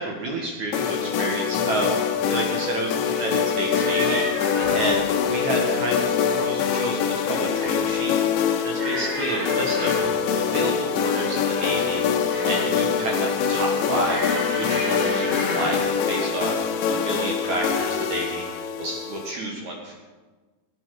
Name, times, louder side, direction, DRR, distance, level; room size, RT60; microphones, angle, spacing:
voice 1, 0.0-1.9 2.2-8.2 8.6-9.9 10.4-14.2 14.5-16.6 16.9-19.9, right 2 dB, 65° right, 0 dB, 1.8 m, -30 dB
sound 1, 0.7-19.3, left 7 dB, 85° left, 3.2 m, -24 dB
sound 2, 3.7-4.9 6.4-7.0 7.3-7.8 8.8-10.2 11.2-12.8 14.0-15.9 16.8-17.1 17.4-17.6, equal, 10° left, 3.2 m, -32 dB
17.0 x 9.6 x 4.7 m, 1.3 s
omnidirectional pair, 5.3 m